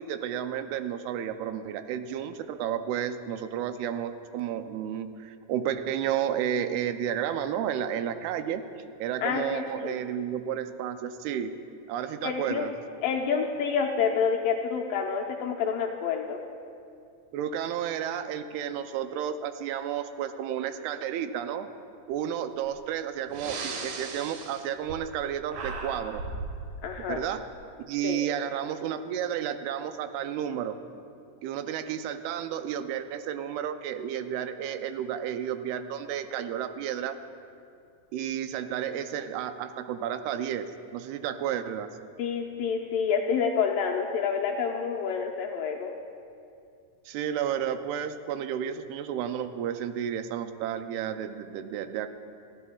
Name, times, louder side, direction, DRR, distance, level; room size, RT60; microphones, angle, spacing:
voice 1, 0.0-8.6 9.0-11.5 11.9-12.7 17.3-21.7 22.1-26.2 27.1-27.4 27.9-30.8 31.4-37.2 38.1-40.7 40.9-41.9 47.1-52.1, right 9 dB, 85° right, 9 dB, 2.6 m, -32 dB
voice 2, 9.2-10.0 12.2-12.7 13.0-16.4 26.8-27.2 28.0-28.2 42.2-45.9, left 6 dB, 80° left, 1 dB, 2.1 m, -28 dB
Breathing, 22.6-22.8 23.3-25.2 25.5-26.6, right 3 dB, 70° right, 2.7 m, -36 dB
29.5 x 11.0 x 2.3 m, 2.4 s
omnidirectional pair, 4.4 m